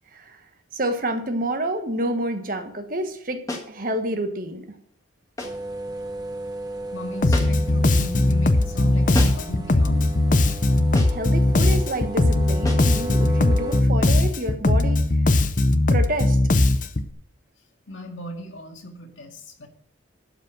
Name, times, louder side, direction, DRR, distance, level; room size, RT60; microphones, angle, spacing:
voice 1, 0.7-4.6 11.1-15.1 15.9-16.4, right 1 dB, 45° right, 7 dB, 1.3 m, -28 dB
sound 1, 3.5-3.8 5.4-5.7 7.3-7.7 9.1-9.6 10.9-11.3 12.6-13.0, left 1 dB, 15° left, 1.6 m, -31 dB
sound 2, 5.4-13.8, right 1 dB, 20° right, 1.0 m, -35 dB
voice 2, 6.9-10.2 17.9-19.7, equal, 90° left, 3 dB, 2.0 m, -36 dB
Bass guitar, 7.2-17.1, left 2 dB, 40° left, 0.6 m, -19 dB
12.0 x 5.3 x 7.6 m, 0.65 s
head